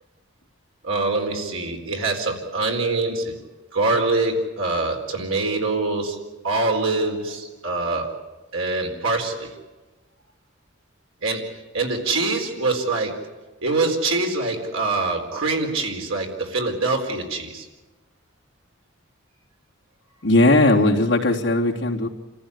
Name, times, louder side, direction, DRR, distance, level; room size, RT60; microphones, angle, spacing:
voice 1, 0.8-3.4 3.7-8.2 8.5-9.6 11.2-13.3 13.6-17.7, right 3 dB, 85° right, 2 dB, 4.4 m, -24 dB
voice 2, 20.2-22.1, left 2 dB, 60° left, -1 dB, 3.2 m, -18 dB
30.0 x 15.0 x 9.8 m, 1.1 s
head